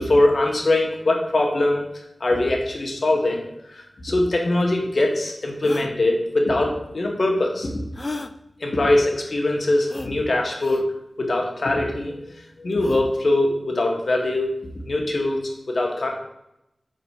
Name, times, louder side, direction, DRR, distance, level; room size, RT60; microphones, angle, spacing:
voice 1, 0.0-1.8 2.2-7.8 8.6-10.8 11.2-12.3 12.6-14.5 14.8-15.4 15.7-16.1, left 2 dB, 65° left, 1 dB, 1.3 m, -22 dB
sound 1, 4.6-4.7 5.6-5.9 7.9-8.3 9.9-10.1 10.6-10.8 12.7-13.1, left 2 dB, 40° left, 0.4 m, -34 dB
4.3 x 3.9 x 5.5 m, 0.84 s
cardioid pair, 50°, 0 cm